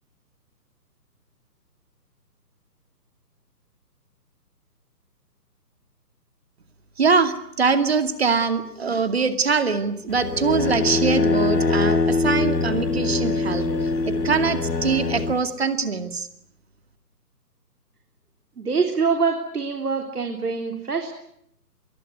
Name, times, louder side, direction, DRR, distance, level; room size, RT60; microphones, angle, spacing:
voice 1, 7.0-16.3, right 5 dB, 40° right, 9 dB, 2.4 m, -23 dB
sound 1, 10.1-15.4, left 3 dB, 75° left, 2.9 m, -23 dB
voice 2, 18.6-21.1, right 5 dB, 65° right, 4 dB, 3.8 m, -24 dB
24.5 x 22.5 x 9.4 m, 0.74 s
hypercardioid pair, 180°, 49 cm